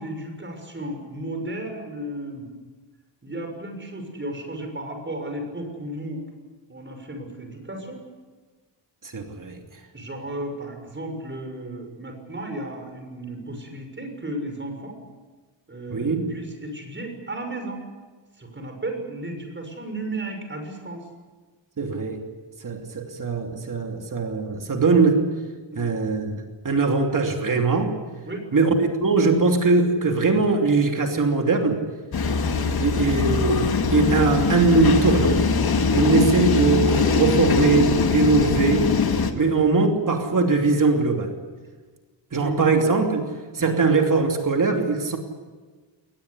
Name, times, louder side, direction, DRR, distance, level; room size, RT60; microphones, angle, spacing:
voice 1, 0.0-2.5 3.2-6.3 6.7-8.0 9.9-15.0 15.7-17.9 18.4-21.0 25.7-25.9 28.3-28.5 32.3-32.5 39.4-39.5 42.3-42.5 43.6-43.8, right 1 dB, 25° right, 4 dB, 6.4 m, -34 dB
voice 2, 9.1-9.6 15.9-16.4 21.8-22.2 22.6-25.3 25.8-28.0 28.5-31.8 32.6-35.4 35.9-38.9 39.4-41.3 42.3-43.3 43.5-45.2, right 4 dB, 45° right, 3 dB, 3.0 m, -21 dB
sound 1, 32.1-39.3, left 5 dB, 55° left, 2.1 m, -21 dB
22.5 x 19.5 x 9.8 m, 1.4 s
wide cardioid pair, 130°, 45 cm